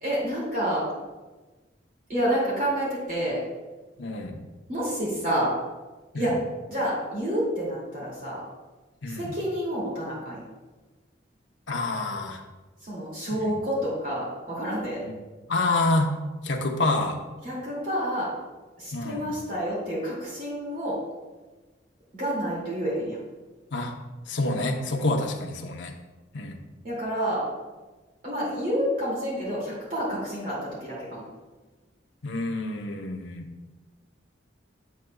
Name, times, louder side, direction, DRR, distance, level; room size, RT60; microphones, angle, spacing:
voice 1, 0.0-0.8 2.1-3.4 4.7-5.5 6.1-6.4 6.7-8.4 9.1-10.5 12.8-15.0 17.4-18.3 18.8-21.0 22.1-23.2 26.8-27.4 28.2-31.2, equal, 45° right, -6 dB, 2.4 m, -29 dB
voice 2, 4.0-4.4 6.1-6.3 9.0-9.3 11.7-12.4 13.3-13.5 15.0-15.1 15.5-16.1 16.4-17.2 18.9-19.4 23.7-23.9 24.3-26.0 26.3-26.6 32.2-33.5, left 2 dB, 75° left, 2 dB, 0.8 m, -27 dB
8.3 x 7.6 x 2.3 m, 1.2 s
head